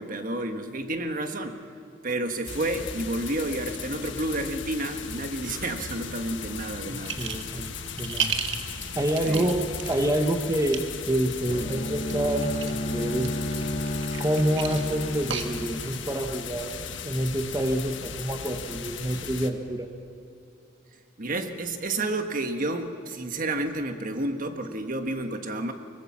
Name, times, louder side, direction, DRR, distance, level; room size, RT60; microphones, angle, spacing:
voice 1, 0.0-1.6 2.0-7.2 9.2-9.6 12.2-12.3 21.2-25.7, right 2 dB, 45° right, 6 dB, 1.5 m, -30 dB
sound 1, 2.5-19.5, left 6 dB, 80° left, 1.4 m, -37 dB
voice 2, 6.9-8.3 8.9-13.4 14.2-16.7 17.0-19.9, right 1 dB, 20° right, 5 dB, 1.1 m, -27 dB
sound 2, 7.1-7.5 7.9-10.0 10.5-10.8 12.0-12.8 13.2-16.0, right 8 dB, 70° right, 1.6 m, -33 dB
Bowed string instrument, 11.5-16.4, left 1 dB, 50° left, 2.8 m, -32 dB
22.5 x 20.0 x 7.3 m, 2.8 s
head